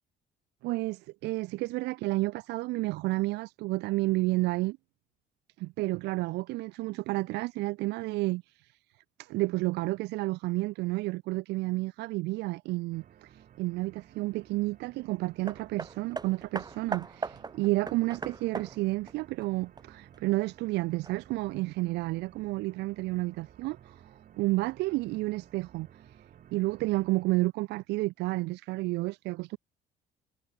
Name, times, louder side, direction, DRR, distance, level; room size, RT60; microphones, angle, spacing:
voice 1, 0.6-4.8 5.6-8.8 9.2-24.0 24.4-25.9 26.5-29.6, right 21 dB, 85° right, 0.6 m, -31 dB
sound 1, 12.9-27.2, right 10 dB, 55° right, 6.7 m, -56 dB
Hammer, 15.5-20.2 21.0-21.1, right 4 dB, 25° right, 3.0 m, -39 dB
cardioid pair, 110°, 17 cm